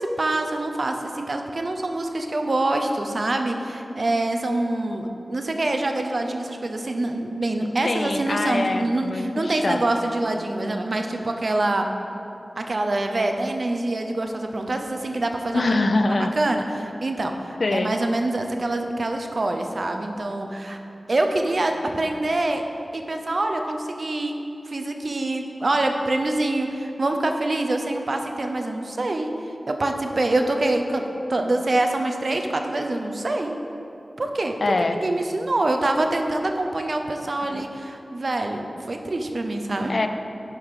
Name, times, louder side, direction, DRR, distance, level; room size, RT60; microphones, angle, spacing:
voice 1, 0.0-11.9 12.6-15.6 16.3-20.8 21.1-22.6 22.9-24.4 24.7-29.3 29.7-33.6 34.2-34.6 34.9-39.9, right 2 dB, 60° right, 4 dB, 0.6 m, -25 dB
voice 2, 7.5-9.8 15.5-16.3 17.6-17.9 34.6-35.0 37.5-37.6 39.9-40.1, left 2 dB, 60° left, 7 dB, 0.4 m, -24 dB
10.5 x 3.7 x 4.8 m, 2.8 s
wide cardioid pair, 75°, 0 cm